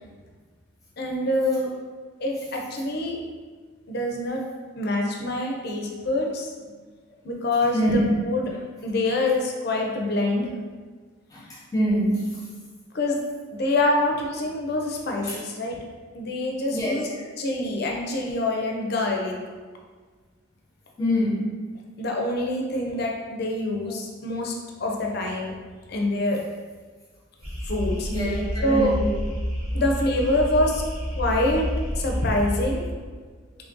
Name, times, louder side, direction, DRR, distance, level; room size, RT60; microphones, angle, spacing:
voice 1, 1.0-1.7 2.2-3.2 3.9-4.5 4.8-6.5 7.2-8.5 8.8-10.5 12.9-13.2 13.5-15.8 16.1-17.1 17.4-19.4 22.0-24.5 24.8-25.5 25.9-26.4 27.7-28.9 29.7-30.8 31.2-31.7 32.0-32.8, left 1 dB, 50° left, 0 dB, 0.5 m, -25 dB
voice 2, 11.7-12.2 15.2-15.3 16.7-16.9 21.0-21.5 28.1-29.1, equal, 15° left, -7 dB, 0.9 m, -24 dB
sound 1, 27.4-32.9, equal, 45° right, 1.4 m, -29 dB
3.1 x 2.6 x 3.6 m, 1.5 s
head